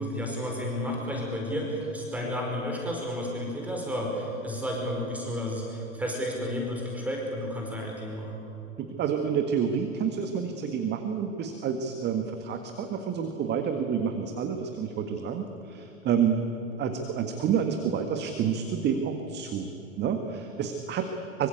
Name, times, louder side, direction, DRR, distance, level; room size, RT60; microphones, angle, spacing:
voice 1, 0.0-8.4, equal, 5° right, -1 dB, 5.3 m, -32 dB
voice 2, 8.8-16.4 16.7-19.7 20.0-21.5, right 7 dB, 25° right, 6 dB, 1.8 m, -29 dB
25.5 x 24.0 x 8.4 m, 3.0 s
figure-of-eight pair, 95°, 41 cm